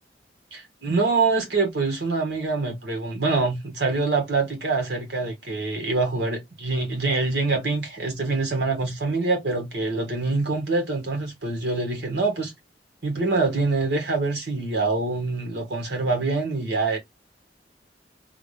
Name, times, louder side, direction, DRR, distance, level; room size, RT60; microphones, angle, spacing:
voice 1, 0.5-12.5 13.0-17.0, right 3 dB, 75° right, 1.7 m, -25 dB
3.5 x 2.6 x 3.3 m
head